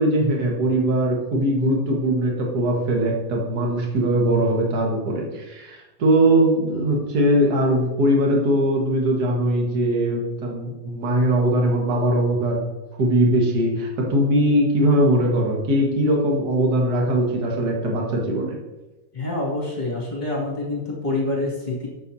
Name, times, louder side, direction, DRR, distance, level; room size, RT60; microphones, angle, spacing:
voice 1, 0.0-12.6 13.0-18.6, right 1 dB, 50° right, -1 dB, 1.2 m, -20 dB
voice 2, 19.1-21.9, left 2 dB, 15° left, -5 dB, 1.5 m, -26 dB
11.5 x 7.7 x 2.8 m, 1.1 s
omnidirectional pair, 4.3 m